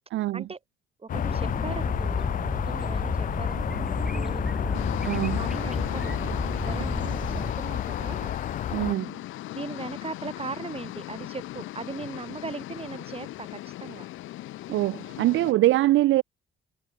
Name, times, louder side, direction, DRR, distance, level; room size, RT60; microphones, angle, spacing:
voice 1, 0.1-0.4 5.0-5.4 8.7-9.2 14.7-16.2, right 16 dB, 75° right, 0.4 m, -23 dB
voice 2, 1.0-4.8 5.3-8.4 9.5-14.1, right 4 dB, 30° right, 4.3 m, -39 dB
sound 1, 1.1-8.9, left 10 dB, 45° left, 0.4 m, -30 dB
sound 2, 1.1-7.5, equal, ahead, 1.2 m, -33 dB
sound 3, 4.7-15.5, left 15 dB, 90° left, 3.0 m, -38 dB
cardioid pair, 90°, 20 cm